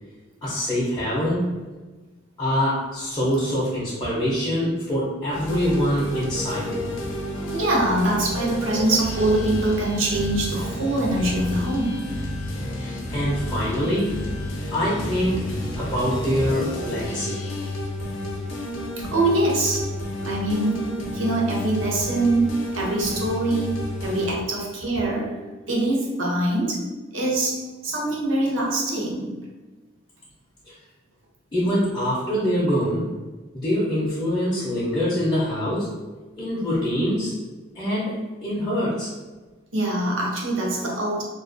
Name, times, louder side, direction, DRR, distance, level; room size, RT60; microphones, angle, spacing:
voice 1, 0.4-1.5 2.4-6.8 12.8-14.1 14.7-15.5 15.8-17.4 30.7-30.8 31.5-33.1 33.5-35.9 36.4-37.3 37.8-39.1, equal, 20° left, -9 dB, 0.4 m, -24 dB
sound 1, 5.3-24.3, left 1 dB, 80° left, 0.5 m, -31 dB
voice 2, 7.5-12.1 19.0-19.9 20.2-20.9 21.1-25.4 25.7-26.8 27.1-29.4 39.7-41.2, right 2 dB, 80° right, -2 dB, 0.6 m, -24 dB
2.3 x 2.1 x 2.4 m, 1.3 s
head